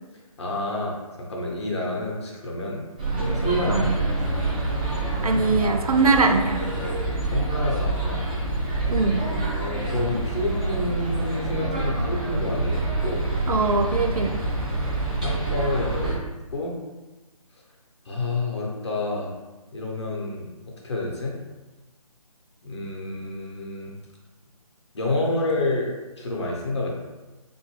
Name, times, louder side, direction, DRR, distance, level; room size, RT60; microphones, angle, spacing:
voice 1, 0.4-2.9 3.3-3.9 7.3-8.2 9.5-13.3 15.2-16.2 16.5-16.8 18.1-19.3 19.7-20.5 20.8-21.4 22.6-23.9 24.9-25.9 26.2-26.9, left 2 dB, 50° left, -2 dB, 0.9 m, -28 dB
sound 1, 3.0-16.1, right 2 dB, 15° right, 0.3 m, -26 dB
voice 2, 5.2-6.6 8.9-9.2 13.5-14.4, right 3 dB, 80° right, 5 dB, 0.4 m, -21 dB
3.6 x 2.6 x 3.0 m, 1.1 s
figure-of-eight pair, 150°, 19 cm